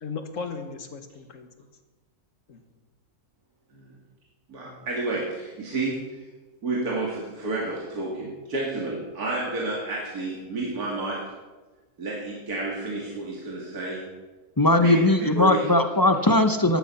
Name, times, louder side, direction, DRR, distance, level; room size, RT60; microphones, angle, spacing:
voice 1, 0.0-1.7 2.5-2.6 4.6-4.9 8.2-8.3, left 5 dB, 55° left, 7 dB, 1.6 m, -37 dB
voice 2, 4.5-6.0 6.6-11.2 12.0-14.0 14.8-15.7, right 2 dB, 75° right, -4 dB, 2.9 m, -30 dB
voice 3, 14.6-16.8, left 2 dB, 25° left, 8 dB, 0.4 m, -19 dB
14.5 x 11.5 x 5.6 m, 1.2 s
omnidirectional pair, 1.6 m